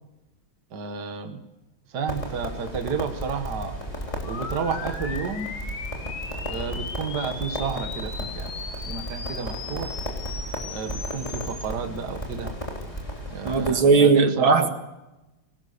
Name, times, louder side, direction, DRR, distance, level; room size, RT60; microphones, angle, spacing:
voice 1, 0.7-1.5 1.9-3.8 4.3-5.5 6.5-8.5 8.9-9.9 10.7-12.5 13.3-14.7, right 6 dB, 55° right, 6 dB, 2.1 m, -31 dB
Crackle, 2.1-13.7, equal, 15° left, 3.7 m, -34 dB
sound 1, 4.2-11.7, left 4 dB, 80° left, 3.0 m, -38 dB
voice 2, 13.4-14.7, right 4 dB, 80° right, 5 dB, 2.7 m, -18 dB
23.5 x 19.0 x 6.8 m, 0.99 s
omnidirectional pair, 2.2 m